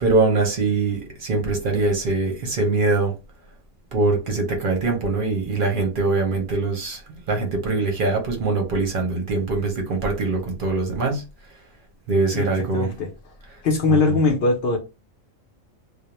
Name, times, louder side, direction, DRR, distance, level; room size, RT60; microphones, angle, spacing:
voice 1, 0.0-3.1 3.9-7.0 7.3-11.2 12.1-12.9 13.9-14.0, right 3 dB, 50° right, 0.7 m, -22 dB
voice 2, 12.3-13.3 13.6-14.8, left 3 dB, 60° left, 0.7 m, -21 dB
2.3 x 2.0 x 2.9 m
omnidirectional pair, 1.4 m